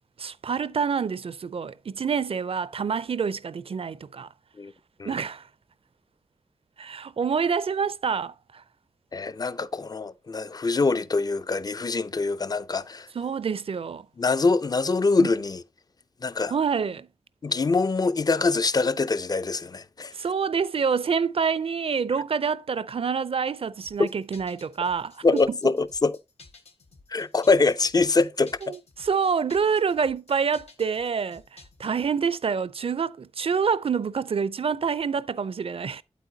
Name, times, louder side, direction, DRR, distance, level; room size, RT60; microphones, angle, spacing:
voice 1, 0.2-4.3 5.0-5.5 6.8-8.6 13.2-14.1 15.2-15.3 16.5-17.1 20.1-25.6 28.6-36.0, right 6 dB, 60° right, 0.4 m, -27 dB
voice 2, 9.1-13.1 14.2-15.6 16.2-16.6 17.4-20.1 24.0-24.1 25.2-26.2 27.1-28.6, left 3 dB, 35° left, 0.4 m, -24 dB
sound 1, 23.8-32.1, left 4 dB, 75° left, 1.4 m, -53 dB
8.6 x 8.2 x 2.7 m
wide cardioid pair, 75°, 11 cm